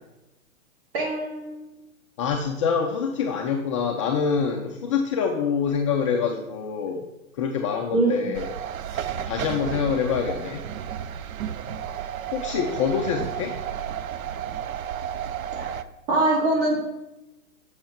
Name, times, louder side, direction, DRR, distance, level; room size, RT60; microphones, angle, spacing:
voice 1, 0.9-1.8 7.9-8.3 15.5-15.7 16.1-16.8, right 2 dB, 40° right, -2 dB, 3.1 m, -23 dB
voice 2, 2.2-7.1 7.4-8.5 8.9-10.6 12.3-13.6, left 6 dB, 25° left, 2 dB, 0.4 m, -26 dB
sound 1, 8.3-15.8, right 9 dB, 75° right, 0.6 m, -32 dB
7.5 x 6.4 x 4.3 m, 0.96 s
hypercardioid pair, 130°, 41 cm